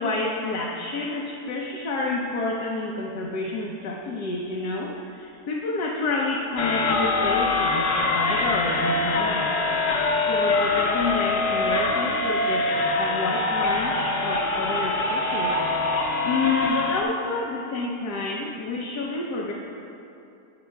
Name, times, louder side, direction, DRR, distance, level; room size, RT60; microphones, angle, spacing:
voice 1, 0.0-9.5 10.3-15.6 16.2-19.5, left 3 dB, 90° left, -3 dB, 1.4 m, -29 dB
sound 1, 6.6-17.0, left 2 dB, 60° left, 1.1 m, -24 dB
19.0 x 7.0 x 2.3 m, 2.8 s
omnidirectional pair, 1.6 m